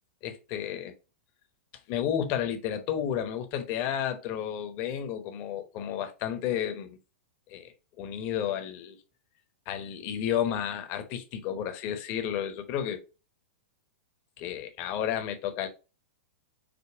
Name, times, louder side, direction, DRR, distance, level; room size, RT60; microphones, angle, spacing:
voice 1, 0.2-0.9 1.9-7.0 7.5-9.0 9.7-13.0 14.4-15.7, left 9 dB, 40° left, 0.9 m, -32 dB
5.2 x 2.1 x 4.4 m
hypercardioid pair, 125°, 6 cm